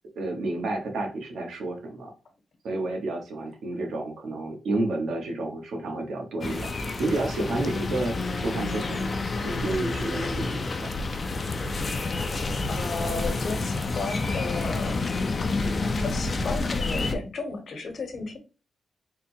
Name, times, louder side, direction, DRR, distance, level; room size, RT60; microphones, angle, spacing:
voice 1, 0.1-2.1 2.6-6.7 7.0-10.9, right 2 dB, 80° right, 2 dB, 1.2 m, -30 dB
sound 1, 6.4-17.2, left 3 dB, 40° left, 0.5 m, -29 dB
voice 2, 12.7-15.1 15.6-18.4, left 4 dB, 60° left, 5 dB, 1.1 m, -34 dB
3.8 x 2.2 x 4.3 m, 0.32 s
cardioid pair, 95°, 0 cm